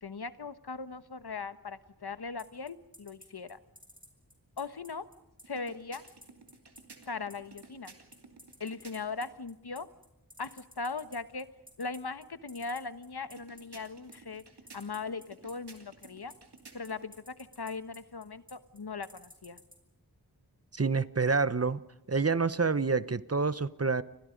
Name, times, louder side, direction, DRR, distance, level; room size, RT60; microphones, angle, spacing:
voice 1, 0.0-3.6 4.6-5.1 5.5-6.0 7.1-7.9 8.6-9.9 10.4-11.5 11.8-14.4 14.7-16.3 16.7-19.6, left 4 dB, 80° left, 12 dB, 1.3 m, -39 dB
sound 1, 2.4-19.8, left 1 dB, 20° right, 5.6 m, -53 dB
sound 2, 5.4-9.3 13.2-17.1, right 3 dB, 90° right, 2.9 m, -55 dB
voice 2, 20.7-21.8 22.1-24.0, right 4 dB, 40° right, 16 dB, 0.9 m, -27 dB
30.0 x 26.0 x 5.2 m, 0.89 s
wide cardioid pair, 55°, 38 cm